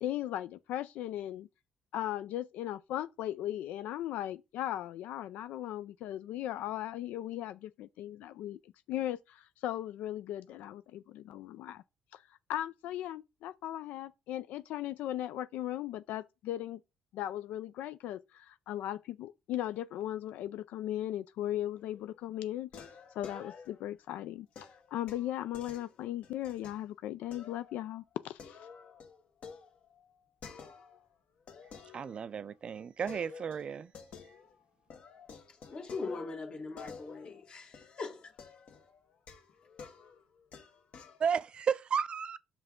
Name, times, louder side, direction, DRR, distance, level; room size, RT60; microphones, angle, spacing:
voice 1, 0.0-1.5 1.9-11.8 12.1-12.2 12.5-16.8 17.1-22.9 23.2-24.5 24.9-28.7, left 12 dB, 80° left, 0.3 m, -37 dB
sound 1, 21.8-22.2 22.7-24.0 24.6-26.8 27.3-27.8 28.1-31.1 31.5-32.6 33.1-34.6 34.9-41.2, left 5 dB, 55° left, 1.3 m, -51 dB
voice 2, 31.9-33.9 41.2-42.4, right 7 dB, 40° right, 0.3 m, -33 dB
voice 3, 35.7-38.3, left 3 dB, 40° left, 1.4 m, -41 dB
5.9 x 5.5 x 3.7 m
cardioid pair, 110°, 3 cm